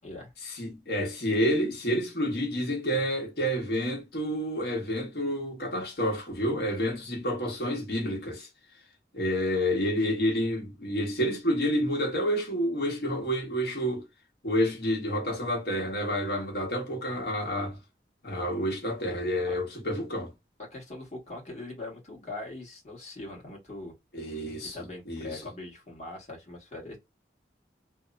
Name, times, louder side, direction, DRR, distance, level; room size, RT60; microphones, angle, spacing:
voice 1, 0.4-8.5 9.1-14.0 14.4-17.8 18.2-20.3 24.1-25.4, equal, 65° left, 1.1 m, -29 dB
voice 2, 20.7-23.9 24.6-27.0, left 2 dB, 40° left, 1.2 m, -41 dB
2.8 x 2.0 x 2.4 m
head